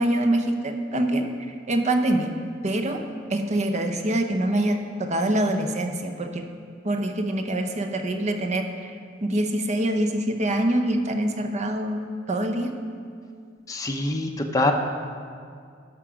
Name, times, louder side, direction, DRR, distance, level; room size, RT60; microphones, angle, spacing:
voice 1, 0.0-2.3 2.6-3.0 3.3-6.4 6.8-12.7, right 1 dB, 35° right, 6 dB, 0.7 m, -25 dB
voice 2, 13.7-14.7, left 2 dB, 15° left, 3 dB, 0.6 m, -24 dB
13.0 x 6.1 x 5.0 m, 2.2 s
head